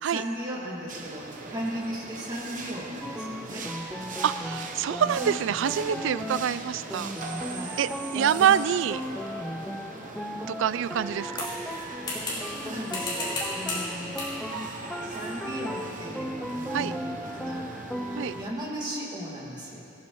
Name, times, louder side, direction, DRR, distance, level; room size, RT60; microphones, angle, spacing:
voice 1, 0.0-3.7 7.5-7.8 8.2-8.3 12.4-14.2 15.0-17.7 18.4-19.8, equal, 20° right, -5 dB, 2.2 m, -36 dB
sound 1, 0.9-18.5, right 3 dB, 40° right, 0.9 m, -40 dB
sound 2, 3.0-18.6, equal, ahead, 0.4 m, -36 dB
voice 2, 4.2-7.1 7.8-9.0 10.5-11.5 16.7-16.9 18.2-18.3, right 8 dB, 70° right, 16 dB, 0.3 m, -26 dB
sound 3, 11.4-12.6 12.9-13.9 14.1-14.4 15.1-15.3, left 2 dB, 25° left, 3.7 m, -33 dB
17.5 x 14.5 x 3.1 m, 2.8 s
head